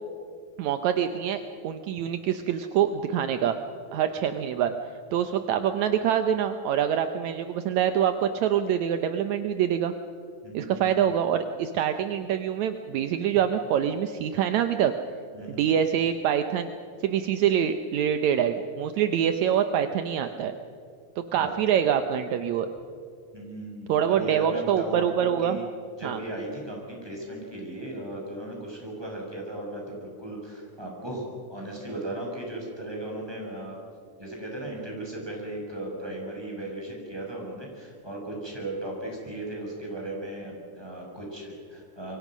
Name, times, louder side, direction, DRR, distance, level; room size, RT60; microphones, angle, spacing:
voice 1, 0.6-3.5 3.9-4.7 5.1-9.9 10.5-14.9 15.5-16.7 17.0-20.5 21.3-22.7 23.9-25.6 26.0-26.2, right 9 dB, 75° right, 8 dB, 2.1 m, -25 dB
voice 2, 10.4-11.1 15.3-15.6 21.3-21.5 23.3-25.6 26.0-33.8 34.2-42.2, right 1 dB, 5° right, -1 dB, 6.4 m, -36 dB
27.5 x 23.5 x 6.2 m, 2.3 s
omnidirectional pair, 3.5 m